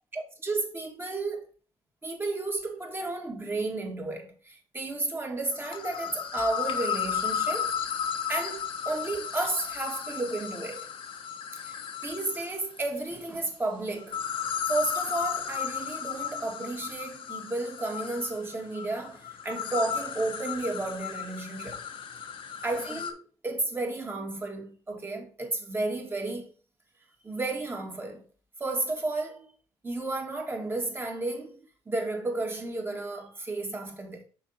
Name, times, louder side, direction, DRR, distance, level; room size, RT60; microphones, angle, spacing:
voice 1, 0.1-1.4 2.0-7.7 8.3-10.9 11.5-14.2 14.7-21.8 22.6-23.2 23.4-26.5 27.2-28.3 28.6-29.5 29.8-34.2, right 2 dB, 25° right, 2.0 m, -32 dB
sound 1, 5.5-12.6 14.0-23.1, left 8 dB, 65° left, 1.1 m, -34 dB
6.1 x 3.8 x 5.4 m
cardioid pair, 80°, 9 cm